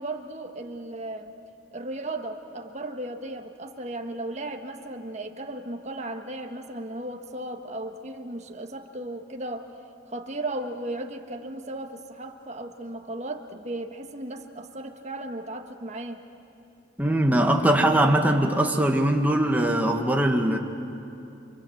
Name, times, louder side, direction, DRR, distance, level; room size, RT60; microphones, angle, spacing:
voice 1, 0.0-1.3 1.7-9.7 10.1-16.2, right 1 dB, 35° right, 4 dB, 1.5 m, -35 dB
voice 2, 17.0-20.6, right 1 dB, 10° right, 2 dB, 1.5 m, -21 dB
29.0 x 24.0 x 7.9 m, 2.7 s
head